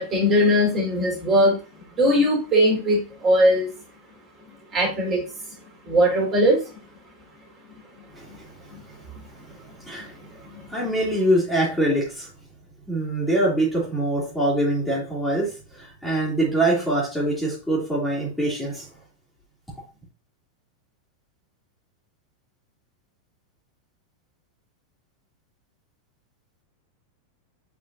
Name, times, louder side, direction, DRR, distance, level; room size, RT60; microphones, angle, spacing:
voice 1, 0.0-1.6 2.0-3.7 4.7-5.2 5.8-6.6 8.7-8.8 10.5-10.9, equal, 25° right, -2 dB, 3.4 m, -20 dB
voice 2, 10.7-12.3 12.9-18.8, right 1 dB, 5° left, -6 dB, 2.7 m, -24 dB
7.2 x 5.0 x 2.7 m, 0.34 s
figure-of-eight pair, 90°, 0 cm